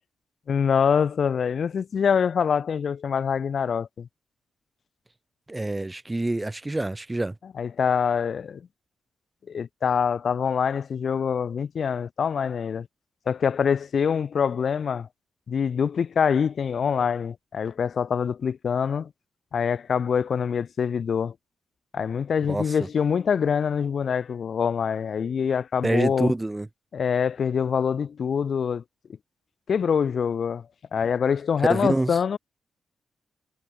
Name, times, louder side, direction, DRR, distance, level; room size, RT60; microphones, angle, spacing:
voice 1, 0.5-4.1 7.6-8.6 9.5-12.9 13.3-15.1 15.5-19.1 19.5-21.3 21.9-26.3 26.9-28.8 29.7-30.6 30.9-32.4, left 7 dB, 60° left, 0.6 m, -25 dB
voice 2, 5.5-7.3 22.5-22.8 25.8-26.7 31.7-32.2, right 2 dB, 15° right, 0.3 m, -26 dB
cardioid pair, 70°, 0 cm